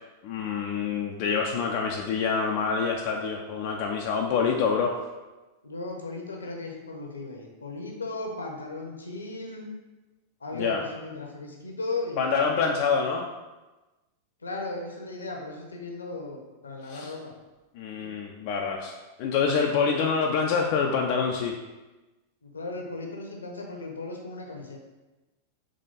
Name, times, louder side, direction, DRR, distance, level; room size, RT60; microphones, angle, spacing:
voice 1, 0.2-5.0 10.5-10.8 12.2-13.3 16.9-17.1 17.7-18.9 19.2-21.5, left 5 dB, 45° left, 1 dB, 0.4 m, -26 dB
voice 2, 5.6-9.7 10.4-12.4 14.4-17.3 18.0-18.1 22.4-24.8, left 2 dB, 75° left, 1 dB, 0.8 m, -36 dB
4.1 x 3.0 x 3.9 m, 1.1 s
figure-of-eight pair, 90°, 0 cm